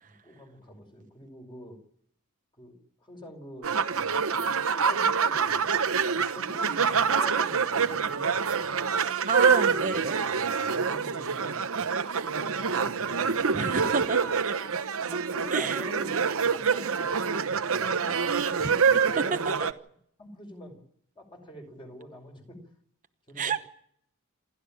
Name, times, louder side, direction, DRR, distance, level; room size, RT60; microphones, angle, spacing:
voice 1, 0.0-1.8 2.5-4.2 4.7-6.1 6.3-8.9 10.0-10.1 10.4-11.8 12.2-13.3 14.2-14.3 15.0-18.3 18.9-19.7 20.2-20.8 21.2-22.6 23.3-23.6, left 1 dB, 25° left, 5.3 m, -46 dB
sound 1, 3.6-19.7, right 6 dB, 65° right, 1.1 m, -26 dB
voice 2, 9.3-10.2 13.5-14.2 15.5-15.8 18.6-18.7 23.4-23.6, right 5 dB, 35° right, 0.9 m, -29 dB
28.0 x 12.5 x 8.9 m
head